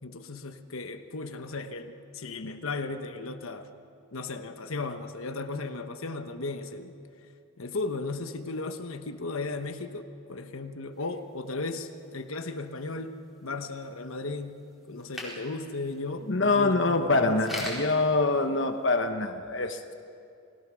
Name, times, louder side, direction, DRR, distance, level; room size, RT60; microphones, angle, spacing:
voice 1, 0.0-3.7 4.1-7.0 7.6-17.7, left 3 dB, 80° left, 7 dB, 1.2 m, -36 dB
sound 1, 10.9-19.1, left 1 dB, ahead, 4.3 m, -45 dB
voice 2, 16.3-19.9, left 3 dB, 60° left, 6 dB, 1.1 m, -25 dB
29.0 x 20.0 x 6.3 m, 2.5 s
head